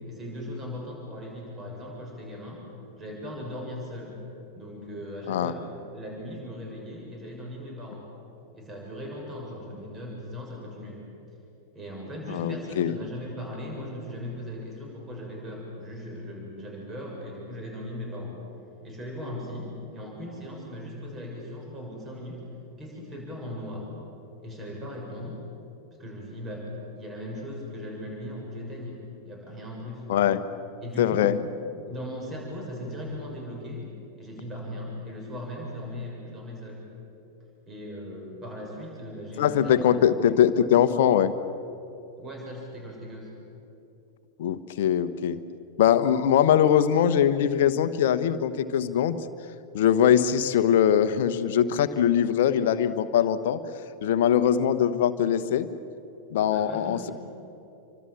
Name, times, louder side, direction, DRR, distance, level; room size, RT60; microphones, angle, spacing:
voice 1, 0.0-2.7 3.0-4.2 4.5-8.1 8.5-11.0 11.7-18.4 18.8-22.4 22.8-23.9 24.4-25.4 26.0-30.1 30.8-31.3 31.9-33.9 34.2-36.8 37.7-40.0 42.2-43.3 56.5-57.1, left 1 dB, 20° right, -1 dB, 7.0 m, -38 dB
voice 2, 12.3-13.0 30.1-30.4 31.0-31.4 39.4-41.3 44.4-45.4 45.8-49.2 49.7-53.6 54.0-55.7 56.3-57.1, left 9 dB, 55° left, 12 dB, 1.2 m, -22 dB
29.0 x 25.0 x 7.5 m, 2.9 s
figure-of-eight pair, 90°, 0 cm